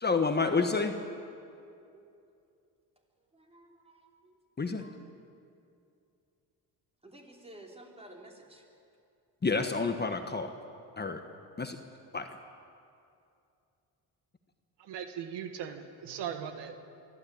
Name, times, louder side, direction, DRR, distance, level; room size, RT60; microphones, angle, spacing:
voice 1, 0.0-0.9 4.6-4.8 9.4-10.5 11.0-11.2 11.6-11.8 12.1-12.4, left 4 dB, 25° left, 6 dB, 1.4 m, -29 dB
voice 2, 3.3-4.4 4.8-5.0 7.0-8.6, right 1 dB, 15° right, 0 dB, 4.2 m, -53 dB
voice 3, 14.8-16.8, right 8 dB, 80° right, 7 dB, 1.7 m, -39 dB
24.0 x 14.0 x 8.9 m, 2.5 s
cardioid pair, 95°, 41 cm